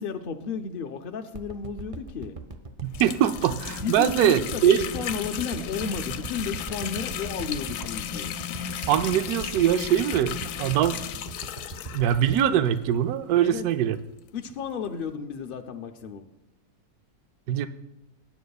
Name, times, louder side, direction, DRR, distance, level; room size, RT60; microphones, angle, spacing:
voice 1, 0.0-2.4 3.8-8.4 13.4-13.6 14.3-16.3, left 6 dB, 70° left, 6 dB, 0.5 m, -33 dB
sound 1, 1.3-13.7 14.1-14.2, right 3 dB, 40° right, 0.4 m, -40 dB
voice 2, 2.8-4.8 8.9-11.0 11.9-14.0 17.5-17.7, right 10 dB, 80° right, 10 dB, 1.1 m, -22 dB
sound 2, 2.9-13.0 13.6-13.7 13.9-14.0 15.1-15.2, left 9 dB, 85° left, 1.1 m, -35 dB
19.0 x 9.3 x 2.3 m, 0.92 s
omnidirectional pair, 1.6 m